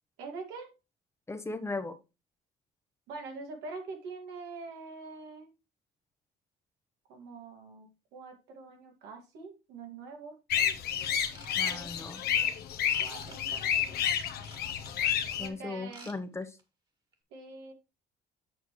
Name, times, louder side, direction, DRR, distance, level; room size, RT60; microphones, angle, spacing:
voice 1, 0.2-0.7 3.1-5.5 7.1-10.3 11.6-11.9 13.0-13.6 13.9-14.0 15.4-16.1 17.3-17.7, right 4 dB, 90° right, 3 dB, 2.2 m, -44 dB
voice 2, 1.3-1.9 11.6-12.2 15.4-16.5, left 3 dB, 15° left, 9 dB, 0.9 m, -37 dB
sound 1, 10.5-15.5, left 9 dB, 70° left, 1.0 m, -30 dB
Ratchet pawl / Tools, 11.3-12.2 12.9-13.4 14.2-15.1 15.8-16.2 16.4-16.6 17.1-17.2, right 3 dB, 25° right, 1.9 m, -51 dB
8.2 x 6.0 x 3.1 m, 0.28 s
cardioid pair, 110°, 17 cm